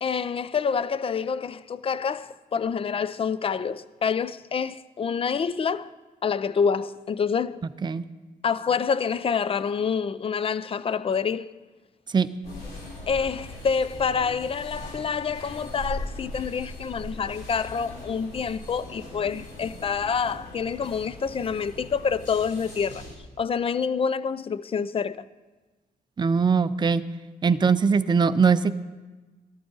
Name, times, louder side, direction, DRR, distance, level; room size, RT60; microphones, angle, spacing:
voice 1, 0.0-5.9 6.2-7.6 8.4-11.6 13.1-23.1 23.4-25.2, left 6 dB, 35° left, 0.5 m, -27 dB
sound 1, 12.4-23.2, left 1 dB, 85° left, 3.5 m, -40 dB
voice 2, 26.2-27.0 27.4-28.7, right 5 dB, 30° right, 0.5 m, -21 dB
13.5 x 12.5 x 3.9 m
cardioid pair, 80°, 16 cm